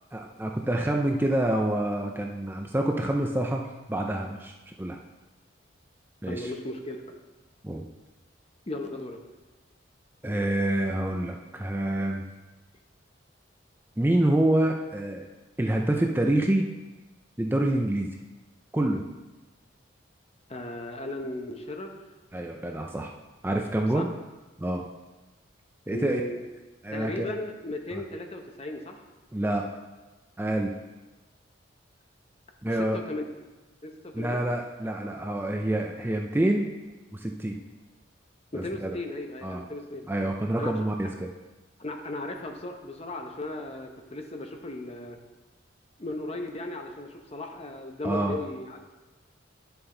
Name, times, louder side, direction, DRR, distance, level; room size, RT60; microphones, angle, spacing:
voice 1, 0.1-4.5 4.8-5.0 6.2-6.5 7.6-7.9 10.2-12.2 14.0-15.3 15.6-16.7 17.4-18.1 18.7-19.0 22.3-23.1 23.4-24.1 24.6-24.8 25.9-26.2 26.8-27.3 27.9-28.0 29.3-29.7 30.4-30.7 32.6-33.0 34.1-36.7 37.1-37.6 38.5-38.9 39.4-39.6 40.1-41.3 48.0-48.4, right 1 dB, 10° right, 1 dB, 0.5 m, -27 dB
voice 2, 6.3-7.0 8.7-9.2 20.5-22.0 23.9-24.0 25.9-26.4 26.9-29.0 32.8-33.2 33.8-34.5 38.5-40.1 40.6-40.7 41.8-45.2 46.0-48.8, left 2 dB, 30° left, 4 dB, 0.9 m, -36 dB
10.5 x 7.0 x 3.9 m, 1.2 s
head